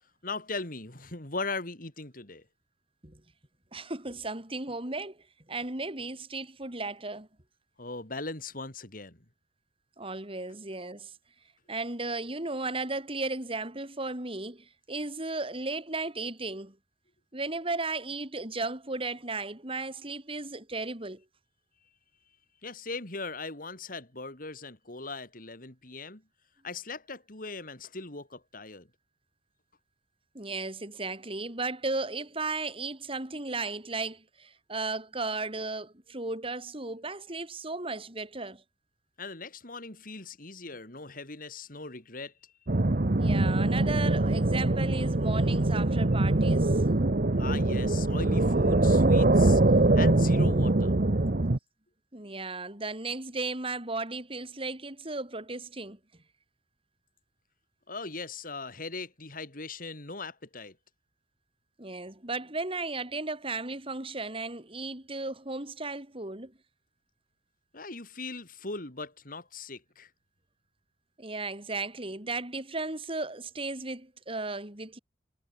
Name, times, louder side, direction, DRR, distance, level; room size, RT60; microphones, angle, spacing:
voice 1, 0.2-2.4 7.8-9.2 22.6-26.2 26.6-28.9 39.2-42.5 47.4-49.6 50.0-51.0 57.9-60.8 67.7-70.1, left 3 dB, 55° left, 4.3 m, -39 dB
voice 2, 3.7-5.2 5.5-7.3 10.0-11.1 11.7-16.8 17.3-21.2 30.3-38.6 43.2-46.8 52.1-56.0 61.8-66.5 71.2-75.0, right 3 dB, 35° right, 4.4 m, -35 dB
sound 1, 42.7-51.6, right 2 dB, 55° right, 1.1 m, -23 dB
head